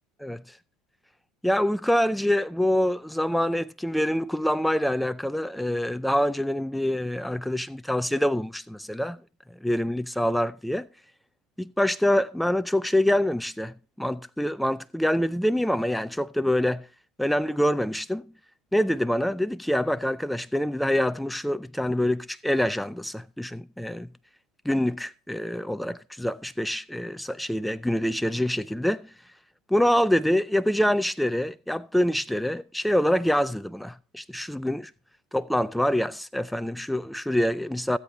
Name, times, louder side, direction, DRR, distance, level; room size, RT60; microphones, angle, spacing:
voice 1, 0.2-0.6 1.4-9.2 9.6-10.9 11.6-16.9 17.2-18.3 18.7-24.1 24.7-29.1 29.7-34.9 35.3-38.0, left 1 dB, 5° left, 0.4 m, -25 dB
16.0 x 8.2 x 3.1 m
hypercardioid pair, 80°, 0 cm